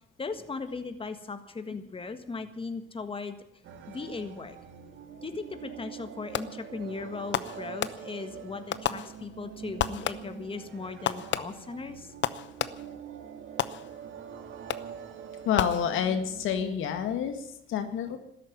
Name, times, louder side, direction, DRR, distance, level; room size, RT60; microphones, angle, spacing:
voice 1, 0.2-3.4 3.9-4.6 5.2-12.1, left 4 dB, 25° left, 9 dB, 1.7 m, -38 dB
sound 1, 3.6-16.7, right 8 dB, 75° right, 2.1 m, -45 dB
Fireworks, 6.3-6.8 7.3-8.3 8.7-9.5 9.8-10.5 11.1-13.0 13.6-14.2 14.7-15.1 15.6-16.3, left 11 dB, 65° left, 0.9 m, -33 dB
voice 2, 15.5-17.4 17.7-18.2, left 8 dB, 85° left, 7 dB, 1.9 m, -28 dB
13.5 x 11.0 x 9.6 m, 0.77 s
cardioid pair, 90°, 20 cm